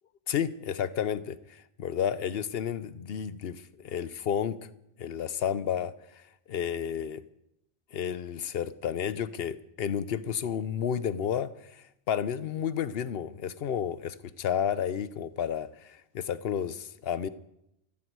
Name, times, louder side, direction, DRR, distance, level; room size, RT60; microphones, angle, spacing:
voice 1, 0.3-4.6 5.0-6.2 6.5-7.2 7.9-17.3, left 8 dB, 60° left, 15 dB, 0.9 m, -31 dB
16.0 x 14.0 x 4.7 m, 0.81 s
omnidirectional pair, 1.2 m